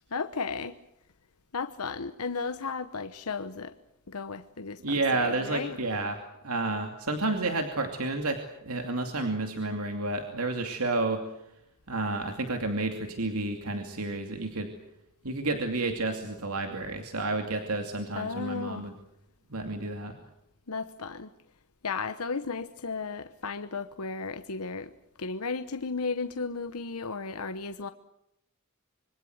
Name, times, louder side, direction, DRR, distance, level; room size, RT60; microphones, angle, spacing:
voice 1, 0.1-0.7 1.5-3.7 4.1-5.8 18.1-18.8 20.7-21.3 21.8-24.9 25.2-27.9, left 4 dB, 85° left, 9 dB, 1.1 m, -34 dB
voice 2, 4.8-11.2 11.9-14.7 15.2-18.9 19.5-20.2, right 2 dB, 80° right, 5 dB, 2.6 m, -30 dB
26.5 x 24.0 x 8.0 m, 0.79 s
head